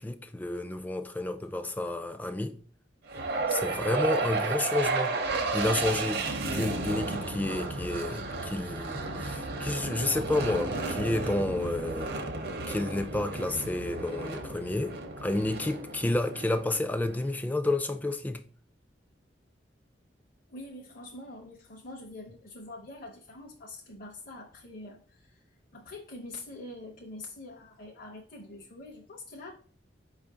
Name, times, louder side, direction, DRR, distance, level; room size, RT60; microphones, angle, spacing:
voice 1, 0.0-2.6 3.5-5.2 5.5-12.2 12.7-14.9 15.2-18.4, left 2 dB, 10° left, 0.3 m, -30 dB
sound 1, 3.1-17.3, right 3 dB, 55° right, 0.6 m, -33 dB
voice 2, 20.5-25.4 25.7-29.5, left 2 dB, 50° left, 0.6 m, -45 dB
5.0 x 2.5 x 3.6 m
head